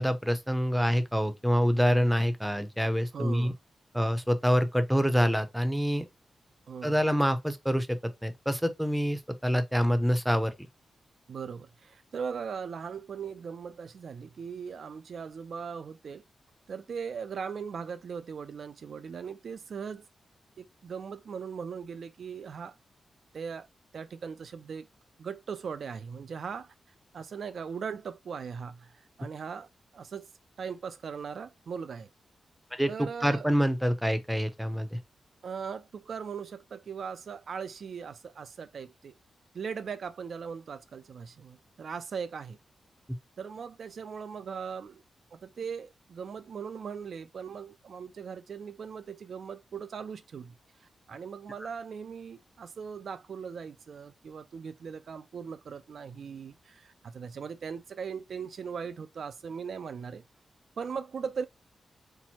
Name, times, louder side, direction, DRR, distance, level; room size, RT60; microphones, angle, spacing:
voice 1, 0.0-3.5 3.9-6.1 6.8-10.5 32.7-32.9 33.2-35.0, equal, ahead, 0.6 m, -26 dB
voice 2, 3.1-3.6 6.7-7.0 11.3-16.2 16.7-20.0 20.6-22.8 23.3-23.7 23.9-24.9 25.2-26.7 27.1-30.3 30.6-32.1 32.9-33.5 35.4-39.2 39.5-42.6 43.4-45.0 45.3-50.5 50.8-60.2 60.8-61.5, right 6 dB, 60° right, 0.3 m, -39 dB
4.4 x 2.0 x 4.1 m
wide cardioid pair, 155°, 0 cm